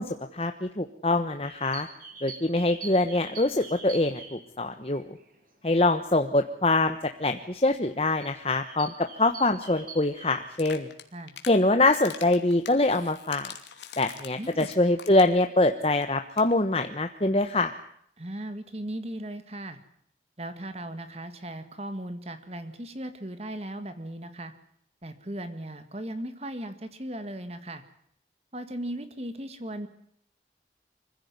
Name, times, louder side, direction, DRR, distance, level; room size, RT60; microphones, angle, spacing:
voice 1, 0.0-1.9 2.2-5.2 5.6-8.9 9.2-10.9 11.5-13.5 14.0-17.7, left 2 dB, 35° left, 7 dB, 1.2 m, -24 dB
sound 1, 1.4-5.4 5.9-6.1 7.0-7.1 7.7-7.9 8.2-10.4, right 4 dB, 50° right, 7.2 m, -44 dB
sound 2, 10.5-11.6 11.9-15.4 15.7-15.8 16.0-16.1 16.3-16.5, left 8 dB, 80° left, 2.8 m, -43 dB
voice 2, 14.4-14.7 18.2-19.8 20.4-24.5 25.0-27.8 28.5-29.9, right 1 dB, 35° right, 10 dB, 1.8 m, -37 dB
25.5 x 16.0 x 9.6 m, 0.68 s
head